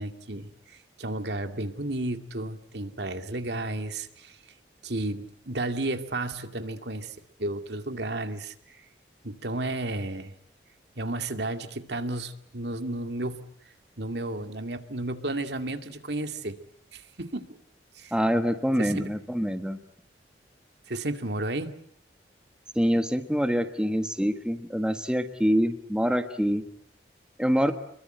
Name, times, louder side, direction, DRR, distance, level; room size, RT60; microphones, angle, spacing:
voice 1, 0.0-4.4 4.8-8.8 9.2-10.3 11.0-13.4 14.0-16.6 16.9-17.6 17.9-18.1 18.8-19.1 20.9-21.7, right 2 dB, 70° right, 7 dB, 2.3 m, -33 dB
voice 2, 18.1-19.8 22.7-26.6 27.4-27.7, equal, 5° right, 7 dB, 1.4 m, -25 dB
28.5 x 22.5 x 9.1 m, 0.66 s
head